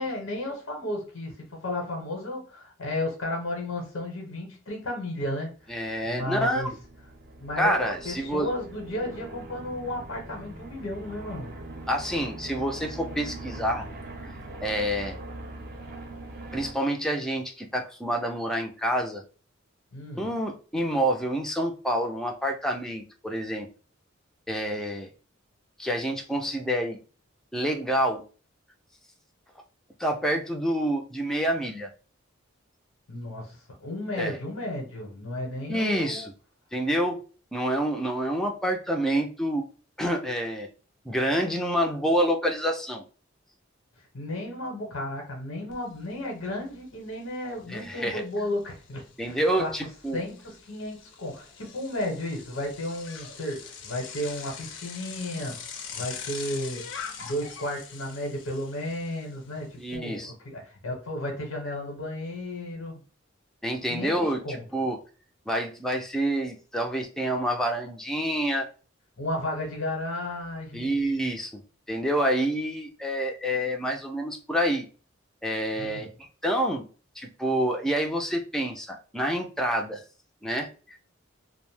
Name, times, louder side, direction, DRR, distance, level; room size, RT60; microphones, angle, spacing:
voice 1, 0.0-1.3 1.6-5.7 6.0-6.7 7.4-7.7 8.0-11.5 19.9-20.2 33.1-36.2 44.1-49.7 50.1-55.6 55.9-56.8 57.2-63.0 63.9-64.6 69.2-70.9 75.7-76.1, left 1 dB, 90° left, 0.9 m, -33 dB
voice 2, 5.7-6.7 7.6-8.5 11.9-13.9 14.2-14.3 14.6-15.2 16.5-19.2 20.2-23.7 24.5-25.1 25.8-27.0 27.5-28.2 30.0-31.9 34.2-34.4 35.7-36.3 36.7-37.2 37.5-39.6 40.0-40.7 41.1-43.0 47.7-48.2 49.2-50.2 59.8-60.3 63.6-65.0 65.5-68.7 70.7-71.5 71.9-74.9 75.4-76.1 76.4-76.9 77.2-80.0 80.4-81.0, equal, 5° left, 0.3 m, -27 dB
sound 1, 6.0-16.7, right 2 dB, 50° right, 0.6 m, -42 dB
Bicycle, 45.7-45.8 46.2-60.0, left 6 dB, 65° left, 0.5 m, -43 dB
2.5 x 2.0 x 3.2 m
head